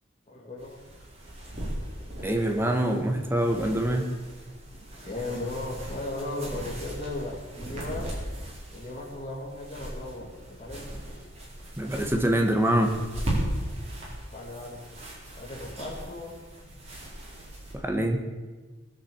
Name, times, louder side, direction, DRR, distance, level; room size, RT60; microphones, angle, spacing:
voice 1, 0.3-0.9 5.0-8.1 8.7-11.0 14.3-14.8 15.4-16.4, left 2 dB, 30° left, -5 dB, 2.4 m, -36 dB
sound 1, 0.6-17.7, right 1 dB, 30° right, 4.3 m, -38 dB
voice 2, 2.2-4.0 11.8-12.9 17.7-18.2, right 1 dB, 10° right, 4 dB, 1.3 m, -25 dB
20.0 x 7.6 x 7.1 m, 1.3 s
head